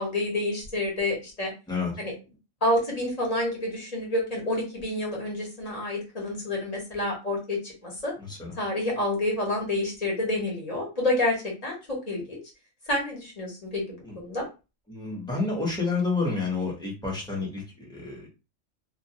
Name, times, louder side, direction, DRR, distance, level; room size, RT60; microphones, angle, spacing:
voice 1, 0.0-1.5 2.0-2.1 2.6-8.1 8.6-12.4 12.9-14.4, left 1 dB, 35° left, -2 dB, 0.8 m, -28 dB
voice 2, 8.2-8.5 14.1-14.2 14.9-18.3, left 4 dB, 5° left, -4 dB, 0.6 m, -29 dB
2.2 x 2.2 x 2.7 m, 0.29 s
omnidirectional pair, 1.3 m